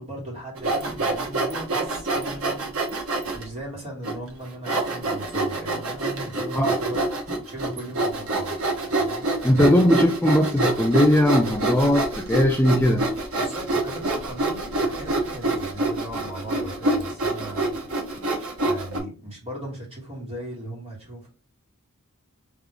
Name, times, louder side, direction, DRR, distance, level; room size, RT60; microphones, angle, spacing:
voice 1, 0.0-2.7 3.3-7.0 7.4-8.5 9.0-9.3 13.4-17.7 18.6-21.3, right 1 dB, 30° right, 2.7 m, -37 dB
Sawing, 0.6-3.4 4.0-4.1 4.7-19.0, right 2 dB, 70° right, 1.2 m, -26 dB
voice 2, 9.4-13.1, left 1 dB, 10° left, 0.4 m, -19 dB
3.8 x 3.6 x 3.6 m
head